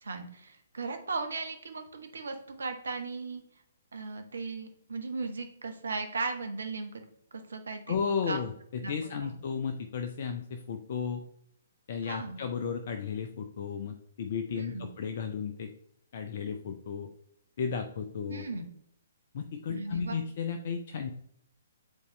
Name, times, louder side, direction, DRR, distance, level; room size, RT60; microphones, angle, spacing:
voice 1, 0.0-3.4 3.9-7.0 7.3-8.0 8.3-8.4 8.8-8.9 9.2-9.3 12.0-12.4 14.5-14.9 18.3-18.6 19.7-20.2, right 3 dB, 65° right, 6 dB, 1.0 m, -37 dB
voice 2, 7.9-11.3 11.9-15.7 16.1-17.1 17.6-18.4 19.3-21.1, left 6 dB, 45° left, 6 dB, 0.5 m, -34 dB
8.3 x 4.1 x 3.2 m, 0.71 s
figure-of-eight pair, 125°, 0 cm